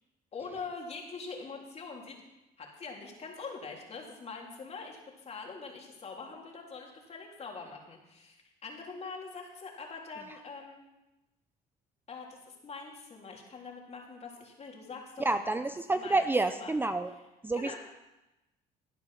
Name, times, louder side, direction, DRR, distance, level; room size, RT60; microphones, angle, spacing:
voice 1, 0.3-2.2 2.6-10.9 12.1-15.6 15.9-16.7 17.5-17.8, left 4 dB, 40° left, 0 dB, 3.5 m, -44 dB
voice 2, 15.2-17.1 17.4-17.7, right 2 dB, 10° right, 10 dB, 0.6 m, -29 dB
17.0 x 10.5 x 5.8 m, 1.0 s
cardioid pair, 110°, 17 cm